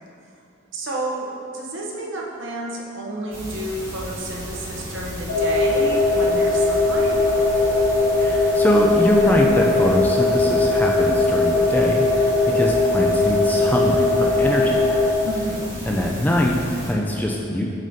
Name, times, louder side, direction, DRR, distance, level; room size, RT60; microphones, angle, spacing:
voice 1, 0.7-1.3 1.5-7.2 15.2-15.6, right 1 dB, 60° right, -3 dB, 0.9 m, -31 dB
sound 1, 3.3-16.9, equal, 15° right, 1.1 m, -35 dB
sound 2, 5.3-15.1, left 2 dB, 75° left, 0.7 m, -19 dB
voice 2, 8.2-14.9 15.8-17.6, left 1 dB, 10° left, -1 dB, 0.3 m, -22 dB
7.5 x 4.9 x 2.7 m, 2.6 s
head